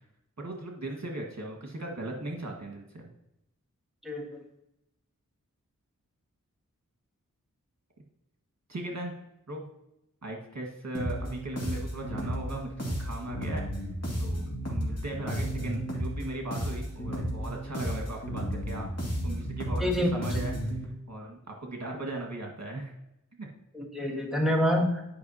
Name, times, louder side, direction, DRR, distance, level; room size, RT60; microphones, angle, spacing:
voice 1, 0.4-3.1 8.7-9.1 9.5-9.6 10.2-13.6 14.2-18.9 19.2-20.5 21.1-22.9 23.4-23.5, right 2 dB, 55° right, 0 dB, 1.7 m, -38 dB
voice 2, 4.0-4.4 19.8-20.1 23.7-25.2, left 1 dB, ahead, -1 dB, 1.5 m, -27 dB
sound 1, 10.9-20.8, equal, 50° left, 2.1 m, -33 dB
10.5 x 5.4 x 2.8 m, 0.85 s
wide cardioid pair, 50°, 33 cm